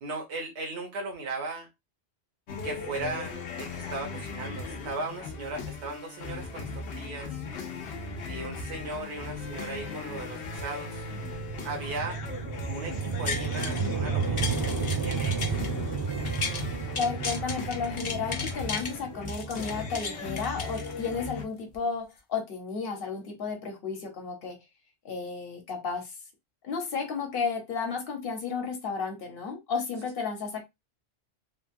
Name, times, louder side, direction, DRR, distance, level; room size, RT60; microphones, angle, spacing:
voice 1, 0.0-1.7 2.6-3.3 3.6-7.4 8.3-11.0 11.6-12.2 12.7-15.6, right 3 dB, 80° right, 1.1 m, -37 dB
sound 1, 2.5-21.5, left 3 dB, 80° left, 0.9 m, -38 dB
sound 2, 10.9-21.1, right 5 dB, 25° right, 0.6 m, -33 dB
sound 3, 13.0-13.9 14.2-16.6 16.9-18.9 19.3-21.3 21.7-21.8, left 5 dB, 40° left, 0.4 m, -35 dB
voice 2, 17.0-24.6 25.0-26.1 26.6-30.6, left 5 dB, 55° left, 1.1 m, -33 dB
3.4 x 2.2 x 2.6 m
omnidirectional pair, 1.1 m